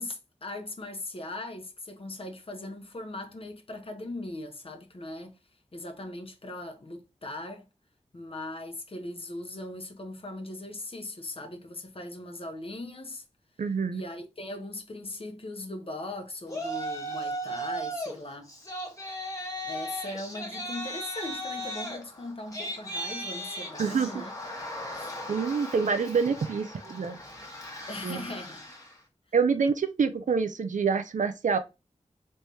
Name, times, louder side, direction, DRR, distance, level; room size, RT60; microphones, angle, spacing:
voice 1, 0.0-5.4 5.7-7.7 8.1-13.2 13.9-18.5 19.6-24.3 24.9-25.1 27.9-28.6, left 2 dB, 45° left, 0.9 m, -39 dB
voice 2, 13.6-14.0 23.8-24.1 24.9-25.0 25.3-27.2 28.0-28.2 29.3-31.6, right 5 dB, 80° right, 0.5 m, -26 dB
Yell, 16.5-18.1 18.5-28.9, equal, 25° left, 1.1 m, -37 dB
3.4 x 3.2 x 2.7 m
wide cardioid pair, 55°, 13 cm